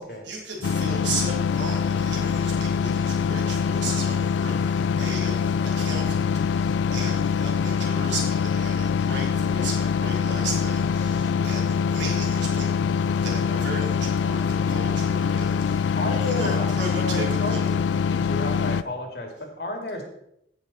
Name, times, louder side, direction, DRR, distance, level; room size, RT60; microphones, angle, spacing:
voice 1, 0.2-16.0 16.2-17.7, right 2 dB, 90° right, -2 dB, 3.3 m, -35 dB
sound 1, 0.6-18.8, left 6 dB, 85° left, 0.3 m, -24 dB
voice 2, 15.9-17.8 18.1-20.0, left 1 dB, 60° left, 2 dB, 2.1 m, -32 dB
16.5 x 5.8 x 4.1 m, 0.76 s
head